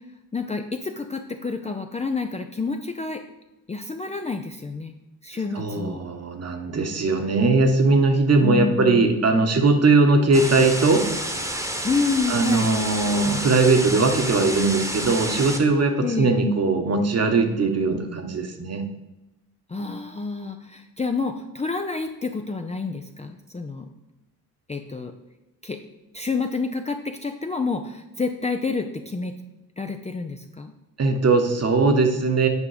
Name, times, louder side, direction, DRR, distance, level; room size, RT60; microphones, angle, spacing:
voice 1, 0.3-3.2 3.7-5.0 5.2-6.0 8.4-9.2 11.8-12.7 16.0-16.3 19.7-23.9 24.7-25.1 25.6-25.8 26.1-29.3 29.8-30.7, left 4 dB, 15° left, 5 dB, 0.5 m, -28 dB
voice 2, 5.5-11.1 12.3-18.8 31.0-32.5, right 3 dB, 40° right, 5 dB, 1.3 m, -20 dB
sound 1, 10.3-15.6, right 1 dB, 5° right, 1.2 m, -29 dB
8.5 x 5.0 x 5.0 m, 0.98 s
supercardioid pair, 75°, 41 cm